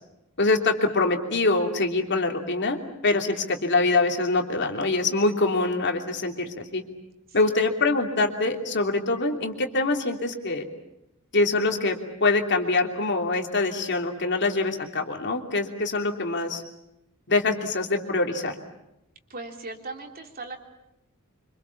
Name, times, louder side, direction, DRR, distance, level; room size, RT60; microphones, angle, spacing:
voice 1, 0.4-2.8 3.0-6.8 7.3-10.6 11.3-16.6 17.3-18.6, left 3 dB, 55° left, 3 dB, 3.0 m, -24 dB
voice 2, 19.3-20.7, right 3 dB, 45° right, 3 dB, 3.3 m, -38 dB
26.0 x 26.0 x 7.2 m, 0.87 s
head